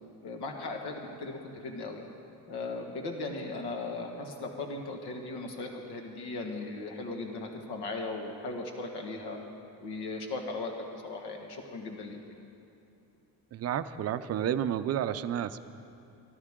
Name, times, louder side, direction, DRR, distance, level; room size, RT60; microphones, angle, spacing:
voice 1, 0.2-2.0 2.5-9.4 9.8-12.2, left 3 dB, 75° left, 2 dB, 1.8 m, -37 dB
voice 2, 13.5-15.6, right 10 dB, 40° right, 11 dB, 0.4 m, -31 dB
23.0 x 13.5 x 3.7 m, 2.8 s
cardioid pair, 175°, 40 cm